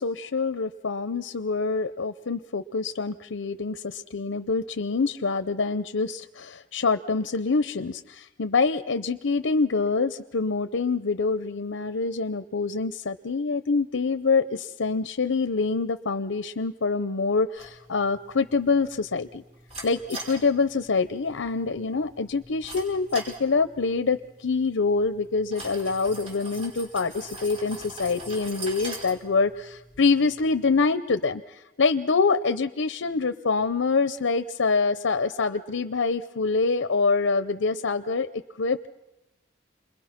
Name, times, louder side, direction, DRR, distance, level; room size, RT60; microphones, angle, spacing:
voice 1, 0.0-19.4 19.8-38.3 38.6-38.9, left 4 dB, 80° left, 10 dB, 0.7 m, -25 dB
sound 1, 17.6-30.9, right 2 dB, 35° right, 5.1 m, -43 dB
28.5 x 21.5 x 6.0 m, 0.95 s
head